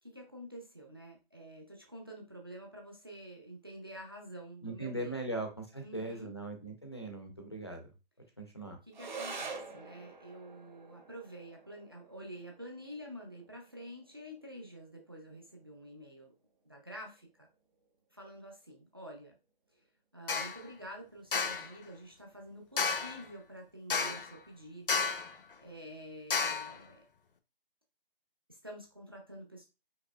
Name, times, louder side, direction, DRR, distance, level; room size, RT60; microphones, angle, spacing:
voice 1, 0.0-5.3 5.8-6.3 8.8-16.3 16.6-17.5 18.1-19.3 19.7-19.8 20.1-25.1 25.6-27.0 28.5-29.7, equal, 25° right, 0 dB, 0.5 m, -48 dB
voice 2, 4.6-7.9 8.4-8.8, right 2 dB, 30° left, 4 dB, 0.5 m, -39 dB
sound 1, 8.9-17.9, right 4 dB, 50° right, 0.8 m, -48 dB
sound 2, 20.3-20.6 21.3-21.7 22.8-23.2 23.9-24.3 24.9-25.3 26.3-26.7, left 5 dB, 65° left, 0.7 m, -32 dB
4.8 x 2.8 x 2.2 m, 0.28 s
hypercardioid pair, 170°, 30 cm